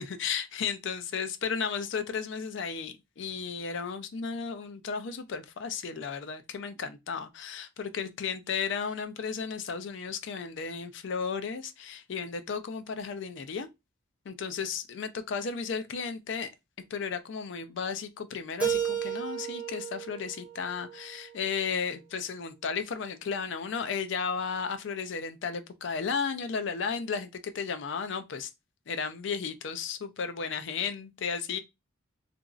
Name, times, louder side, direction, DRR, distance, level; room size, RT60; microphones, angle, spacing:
voice 1, 0.0-13.7 14.3-16.5 16.9-28.5 28.9-31.6, left 6 dB, 65° left, 0.4 m, -34 dB
Keyboard (musical), 18.6-21.5, right 8 dB, 5° right, 0.6 m, -33 dB
2.9 x 2.5 x 2.4 m
head